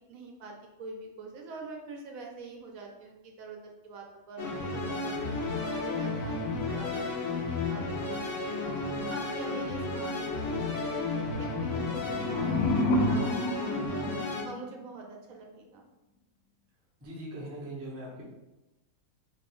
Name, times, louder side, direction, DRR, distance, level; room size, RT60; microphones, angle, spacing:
voice 1, 0.1-5.2 5.6-7.1 7.4-8.8 9.1-13.4 13.6-14.1 14.4-15.8, right 3 dB, 70° right, 1 dB, 1.0 m, -45 dB
sound 1, 4.4-14.4, left 3 dB, 65° left, 1.0 m, -32 dB
sound 2, 11.8-14.8, left 1 dB, 85° left, 1.1 m, -30 dB
voice 2, 17.0-18.2, right 1 dB, 15° right, -5 dB, 0.5 m, -40 dB
3.2 x 3.0 x 3.0 m, 0.99 s
omnidirectional pair, 1.6 m